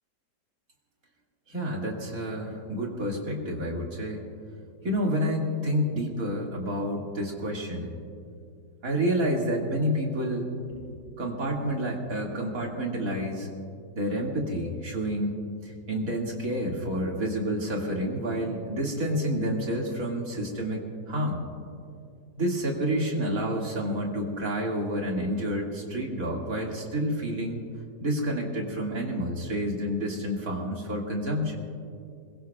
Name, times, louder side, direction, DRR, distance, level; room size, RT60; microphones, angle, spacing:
voice 1, 1.5-4.2 4.8-7.9 8.8-13.5 13.9-15.4 15.6-21.4 22.4-27.6 28.0-31.6, equal, 50° right, -1 dB, 2.7 m, -29 dB
27.0 x 22.0 x 2.4 m, 2.4 s
omnidirectional pair, 1.9 m